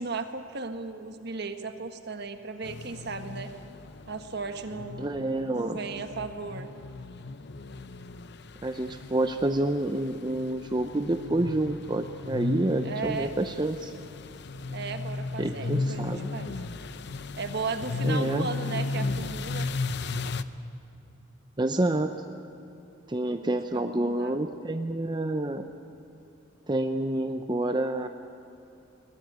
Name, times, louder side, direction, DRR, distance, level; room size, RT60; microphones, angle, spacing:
voice 1, 0.0-3.5 4.1-5.1 5.5-6.7 12.8-13.3 14.7-16.5 17.4-19.7 23.7-24.4, right 4 dB, 55° right, 7 dB, 1.5 m, -35 dB
sound 1, 2.6-20.4, left 3 dB, 55° left, 0.7 m, -35 dB
voice 2, 5.0-5.8 8.6-13.9 15.4-16.3 18.0-18.5 21.6-22.1 23.1-25.6 26.7-28.1, right 1 dB, 20° right, 6 dB, 0.7 m, -28 dB
21.5 x 18.5 x 9.5 m, 2.8 s
head